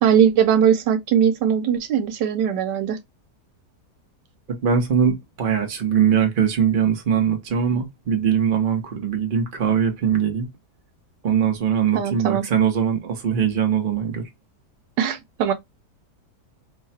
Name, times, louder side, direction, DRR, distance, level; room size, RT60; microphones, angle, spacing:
voice 1, 0.0-3.0 11.9-12.4 15.0-15.5, right 8 dB, 85° right, 1.3 m, -20 dB
voice 2, 4.6-10.5 11.2-14.2, right 8 dB, 35° right, 1.0 m, -21 dB
3.2 x 2.3 x 4.2 m
omnidirectional pair, 1.8 m